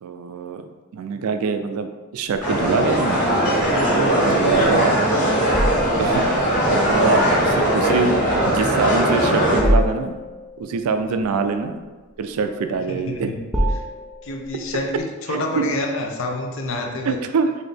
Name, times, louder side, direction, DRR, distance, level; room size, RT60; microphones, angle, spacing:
voice 1, 0.0-3.2 3.9-4.9 6.0-6.3 6.7-8.1 8.5-10.2 10.6-11.8 12.2-13.3 15.3-15.6 17.1-17.5, right 5 dB, 80° right, 8 dB, 0.3 m, -24 dB
sound 1, 2.4-9.6, right 1 dB, 35° left, 1.2 m, -19 dB
sound 2, 2.6-15.0, equal, ahead, 0.4 m, -28 dB
sound 3, 2.7-5.5, left 1 dB, 45° right, 1.2 m, -37 dB
voice 2, 4.4-5.0 6.9-7.2 11.1-11.2 12.9-13.4 13.8-13.9 14.2-17.2, left 2 dB, 60° left, 2 dB, 0.5 m, -28 dB
4.0 x 2.6 x 3.3 m, 1.3 s
head